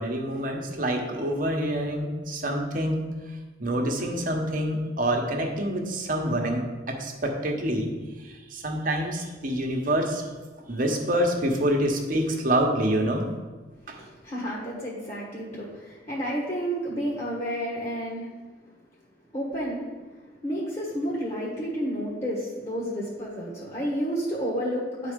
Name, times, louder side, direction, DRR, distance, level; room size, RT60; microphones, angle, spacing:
voice 1, 0.0-3.0 3.6-7.9 8.2-10.3 10.7-13.3 13.9-14.0, right 1 dB, 45° right, 1 dB, 1.1 m, -26 dB
voice 2, 13.9-18.3 19.3-19.9 20.4-25.1, equal, 30° left, -5 dB, 1.5 m, -31 dB
9.7 x 4.1 x 5.2 m, 1.3 s
head